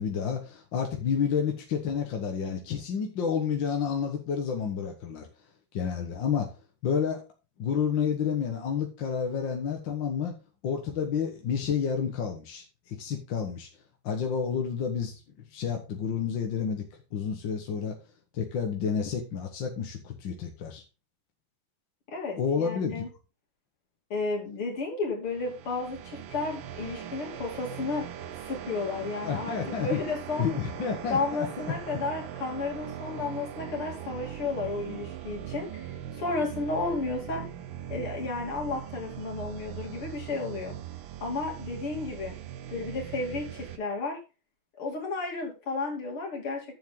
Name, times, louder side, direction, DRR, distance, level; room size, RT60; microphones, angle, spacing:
voice 1, 0.0-5.3 5.7-6.5 6.8-7.2 7.6-10.4 10.6-13.7 14.0-15.2 15.5-16.8 17.1-17.9 18.3-20.8 22.4-23.0 29.2-30.0 30.4-31.5, left 7 dB, 60° left, 2 dB, 2.0 m, -30 dB
voice 2, 22.1-23.1 24.1-28.1 28.5-30.6 31.1-37.4 37.9-40.8 41.2-42.4 42.7-44.2 44.8-46.8, left 3 dB, 80° left, -1 dB, 3.9 m, -33 dB
sound 1, 25.3-43.8, right 10 dB, 70° right, 1.5 m, -40 dB
10.5 x 7.2 x 3.9 m, 0.31 s
omnidirectional pair, 2.4 m